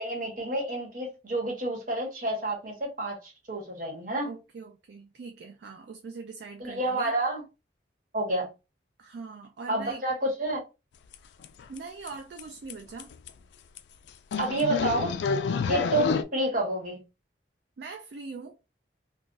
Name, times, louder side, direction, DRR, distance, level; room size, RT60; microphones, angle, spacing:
voice 1, 0.0-4.3 6.6-7.4 8.1-8.5 9.7-10.6 14.4-15.2 15.7-17.0, right 1 dB, 45° right, 1.2 m, -29 dB
voice 2, 4.2-7.1 9.0-10.0 11.7-13.1 17.8-18.6, right 4 dB, 60° right, 0.3 m, -42 dB
sound 1, 11.1-11.2 11.4-11.8 12.1-12.2 12.4-12.5 12.7-12.8 13.0-13.3 13.8-13.9 14.3-16.2, left 5 dB, 70° left, 0.3 m, -28 dB
2.4 x 2.3 x 3.8 m
head